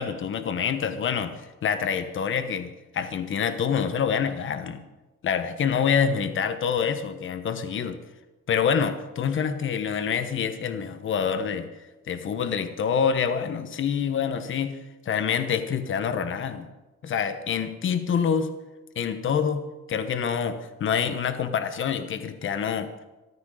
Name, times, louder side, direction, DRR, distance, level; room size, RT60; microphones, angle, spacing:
voice 1, 0.0-4.8 5.2-8.0 8.5-11.7 12.1-14.8 15.0-16.7 17.0-18.5 18.9-23.0, left 7 dB, 40° left, 9 dB, 1.1 m, -26 dB
13.5 x 13.5 x 4.9 m, 1.1 s
cardioid pair, 155°, 30 cm